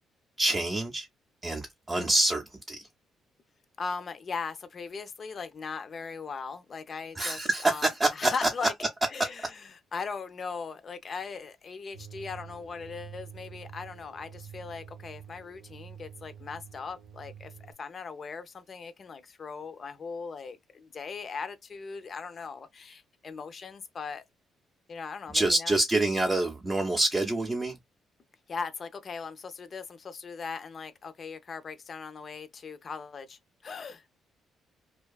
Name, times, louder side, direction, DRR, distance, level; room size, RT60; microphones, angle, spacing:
voice 1, 0.4-1.1 1.4-2.8 7.2-8.5 25.3-27.8, right 2 dB, 20° right, 0.6 m, -26 dB
voice 2, 3.8-7.9 8.1-8.7 9.1-24.2 24.9-25.8 28.5-34.1, left 5 dB, 45° left, 0.4 m, -39 dB
sound 1, 11.9-17.7, right 8 dB, 75° right, 0.8 m, -47 dB
2.5 x 2.3 x 2.2 m
cardioid pair, 90°, 0 cm